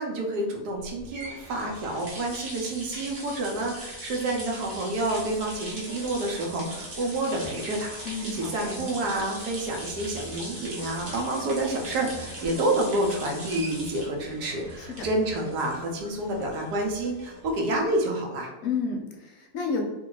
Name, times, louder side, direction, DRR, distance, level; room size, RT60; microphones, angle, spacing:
voice 1, 0.0-18.5, right 1 dB, 90° right, 0 dB, 1.4 m, -29 dB
sound 1, 0.8-17.8, right 1 dB, 50° right, 0.7 m, -40 dB
voice 2, 8.1-8.8 14.8-15.1 18.6-19.8, left 5 dB, 70° left, 2 dB, 1.0 m, -31 dB
3.1 x 2.3 x 3.8 m, 1.1 s
omnidirectional pair, 1.7 m